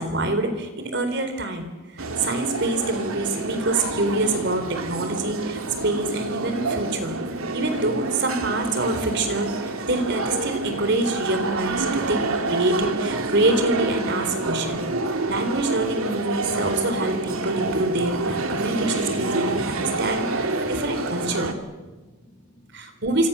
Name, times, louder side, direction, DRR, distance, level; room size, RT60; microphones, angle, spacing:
voice 1, 0.0-7.1 7.5-14.8 15.3-21.5 22.7-23.3, right 2 dB, 55° right, 7 dB, 3.9 m, -26 dB
sound 1, 2.0-21.5, right 2 dB, 85° right, 2.7 m, -28 dB
voice 2, 20.1-20.9 21.7-23.0, equal, 35° left, 2 dB, 6.8 m, -52 dB
27.0 x 27.0 x 7.0 m, 1.2 s
head